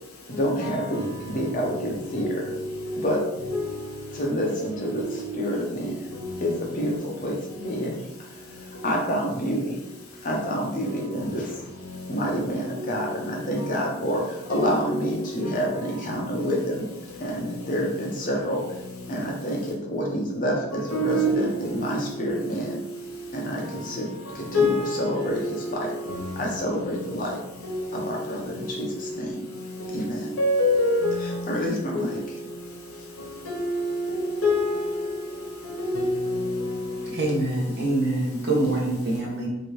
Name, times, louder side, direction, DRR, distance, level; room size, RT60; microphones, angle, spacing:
voice 1, 0.3-2.4 3.0-3.2 4.1-6.0 6.4-9.8 10.2-11.7 12.1-16.9 17.2-18.6 19.1-22.8 23.3-24.1 24.3-25.9 26.4-27.4 27.9-29.5 29.9-30.4 31.5-32.2, equal, 40° left, 0.6 m, -28 dB
voice 2, 14.5-15.1 20.9-21.4 22.1-22.3 24.5-25.7 27.6-28.0 30.4-31.4 31.9-32.1 33.5-34.1 34.4-35.1 35.7-36.7, left 1 dB, 85° left, 0.8 m, -25 dB
voice 3, 37.1-39.5, right 2 dB, 50° right, 0.8 m, -25 dB
3.1 x 2.6 x 3.0 m
head